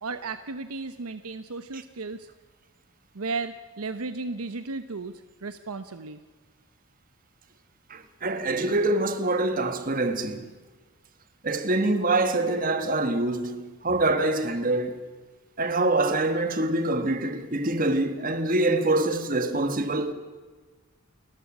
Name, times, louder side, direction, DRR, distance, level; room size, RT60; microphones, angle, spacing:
voice 1, 0.0-2.3 3.1-6.2, right 3 dB, 85° right, 0.9 m, -34 dB
voice 2, 7.9-10.5 11.4-15.0 15.6-20.1, right 2 dB, 40° right, 1.5 m, -25 dB
29.5 x 14.5 x 6.1 m
head